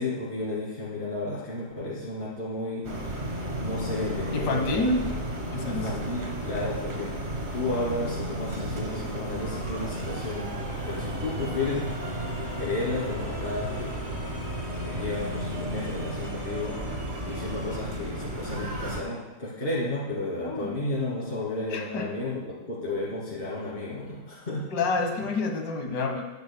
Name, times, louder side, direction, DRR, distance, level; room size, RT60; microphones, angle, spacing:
voice 1, 0.0-3.2 3.6-4.9 5.6-7.1 7.5-10.6 10.8-12.2 12.6-14.2 14.8-16.8 17.2-24.7, left 2 dB, 30° left, -8 dB, 2.7 m, -32 dB
sound 1, 2.8-19.0, right 1 dB, 30° right, 1.1 m, -33 dB
voice 2, 4.3-5.1 5.5-5.9 20.4-20.7 21.7-22.1 24.7-26.2, left 3 dB, 60° left, 4 dB, 1.9 m, -28 dB
16.5 x 10.0 x 2.2 m, 1.1 s
omnidirectional pair, 2.1 m